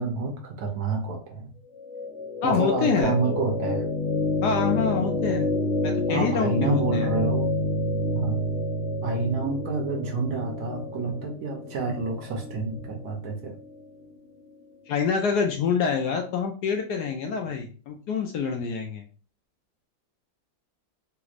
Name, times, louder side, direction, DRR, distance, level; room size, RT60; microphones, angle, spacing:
voice 1, 0.0-1.5 2.4-3.9 6.1-7.5 8.1-8.4 9.0-13.6, right 3 dB, 65° right, 2 dB, 1.1 m, -28 dB
sound 1, 1.7-13.8, left 1 dB, 50° left, 0.9 m, -29 dB
voice 2, 2.4-3.4 4.4-5.5 5.8-7.1 14.9-19.0, left 6 dB, 70° left, 3 dB, 1.0 m, -26 dB
3.4 x 3.0 x 2.4 m, 0.38 s
omnidirectional pair, 2.0 m